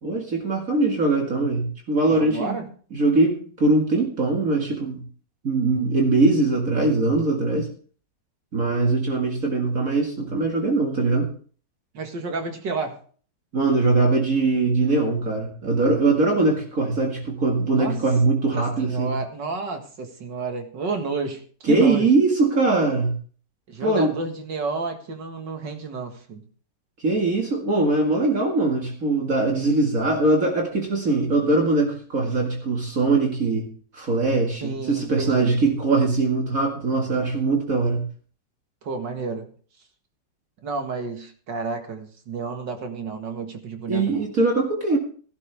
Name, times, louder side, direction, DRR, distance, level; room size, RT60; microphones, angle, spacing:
voice 1, 0.0-2.6 2.9-5.0 5.4-7.7 8.5-11.3 13.5-19.2 21.7-23.1 23.8-24.1 27.0-33.7 33.9-38.1 43.9-45.0, right 3 dB, 50° right, 0 dB, 2.5 m, -21 dB
voice 2, 2.0-2.7 11.9-13.0 17.7-18.0 18.5-22.1 23.7-26.4 34.6-35.6 38.8-39.5 40.6-44.2, right 4 dB, 80° right, 5 dB, 2.5 m, -31 dB
15.0 x 12.5 x 3.5 m, 0.43 s
omnidirectional pair, 1.9 m